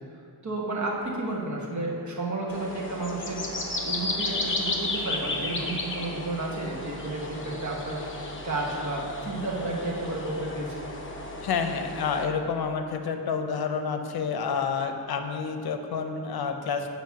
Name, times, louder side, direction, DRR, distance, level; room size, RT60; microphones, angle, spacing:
voice 1, 0.4-3.4 3.8-10.8, right 2 dB, 50° right, -3 dB, 1.3 m, -32 dB
sound 1, 2.5-12.3, left 2 dB, 30° left, 0.8 m, -33 dB
voice 2, 11.4-16.9, left 5 dB, 75° left, 6 dB, 0.6 m, -29 dB
8.8 x 3.0 x 5.7 m, 2.5 s
wide cardioid pair, 110°, 37 cm